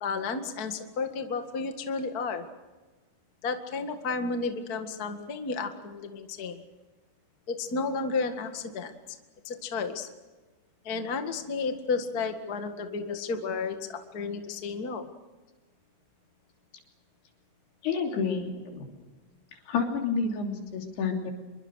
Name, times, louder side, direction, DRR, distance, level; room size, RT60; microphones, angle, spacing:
voice 1, 0.0-2.4 3.4-6.6 7.5-8.9 9.4-10.1 10.8-15.1, left 4 dB, 40° left, 6 dB, 1.3 m, -32 dB
voice 2, 17.8-18.9 19.7-21.3, left 5 dB, 75° left, 2 dB, 5.2 m, -29 dB
26.5 x 22.5 x 6.4 m, 1.2 s
omnidirectional pair, 4.7 m